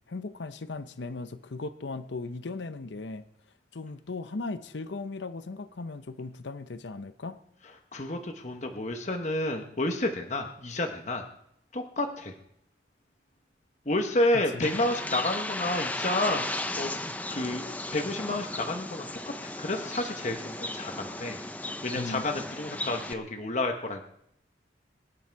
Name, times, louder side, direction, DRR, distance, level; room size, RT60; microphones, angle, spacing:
voice 1, 0.1-3.2 3.7-7.4 14.3-14.7 21.9-22.2, left 3 dB, 75° left, 12 dB, 0.7 m, -37 dB
voice 2, 7.9-11.3 11.7-12.3 13.9-16.9 17.3-19.1 19.4-21.4 21.8-24.0, left 1 dB, 40° left, 4 dB, 1.1 m, -30 dB
Bird, 14.6-23.1, left 1 dB, 10° left, 0.6 m, -35 dB
23.0 x 10.0 x 4.6 m, 0.76 s
head